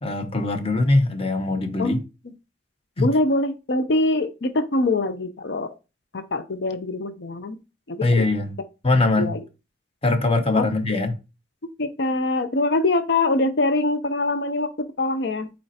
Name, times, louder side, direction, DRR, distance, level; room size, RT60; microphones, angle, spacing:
voice 1, 0.0-2.0 3.0-3.1 8.0-8.5 8.8-9.3 10.0-11.2, left 2 dB, 35° left, 1.1 m, -21 dB
voice 2, 3.0-5.7 6.1-7.6 7.9-8.3 9.2-9.4 10.5-10.7 11.8-15.5, left 2 dB, 70° left, 0.7 m, -23 dB
7.9 x 4.3 x 2.9 m
head